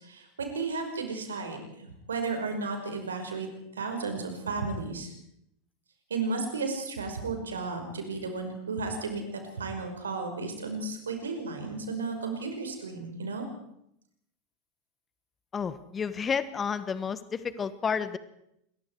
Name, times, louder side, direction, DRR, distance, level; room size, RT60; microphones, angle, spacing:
voice 1, 0.0-3.5 3.8-5.1 6.1-13.5, right 4 dB, 75° right, 5 dB, 5.5 m, -34 dB
voice 2, 15.5-18.2, left 6 dB, 25° left, 14 dB, 1.5 m, -31 dB
27.0 x 22.0 x 4.8 m, 0.76 s
figure-of-eight pair, 85°, 0 cm